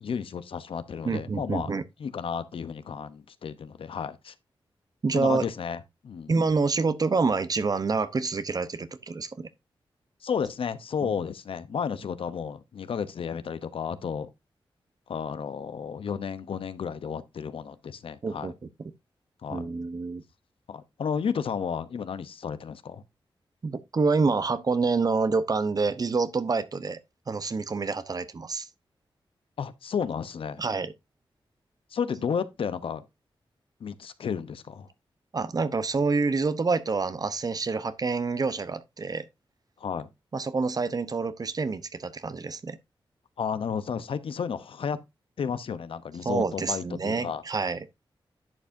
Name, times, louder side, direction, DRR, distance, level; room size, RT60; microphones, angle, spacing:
voice 1, 0.0-1.7 2.0-4.3 5.1-6.3 10.2-14.3 15.1-18.5 19.4-19.7 20.7-23.0 29.6-30.6 31.9-33.0 33.8-34.9 39.8-40.1 43.4-45.0 45.4-47.4, left 6 dB, 80° left, 0.8 m, -32 dB
voice 2, 1.0-1.8 5.0-5.4 6.3-9.5 11.0-11.1 18.2-18.5 19.5-20.2 23.6-27.0 27.3-28.7 30.6-30.9 35.3-39.3 40.3-42.8 46.2-47.8, right 4 dB, 45° right, 0.9 m, -27 dB
11.0 x 7.5 x 2.7 m
wide cardioid pair, 90°, 9 cm